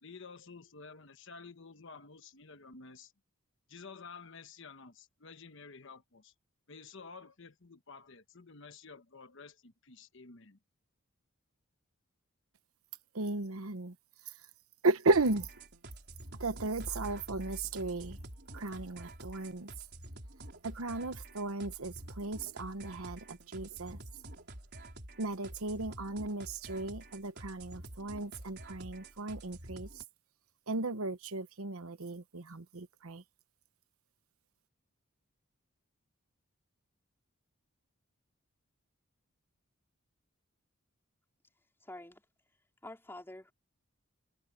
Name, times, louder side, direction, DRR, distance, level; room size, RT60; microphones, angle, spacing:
voice 1, 0.0-3.1 3.7-6.3 6.7-10.6, left 4 dB, 60° left, 1.2 m, -51 dB
voice 2, 13.1-13.9 14.8-15.5 16.4-18.2 18.5-19.7 20.6-24.0 25.2-30.0 30.7-33.2, right 3 dB, 90° right, 1.1 m, -35 dB
sound 1, 15.1-30.0, right 1 dB, 50° right, 4.4 m, -49 dB
sound 2, 16.4-19.3, equal, 20° right, 6.8 m, -48 dB
voice 3, 41.8-42.2 42.8-43.5, left 1 dB, 10° left, 4.1 m, -47 dB
head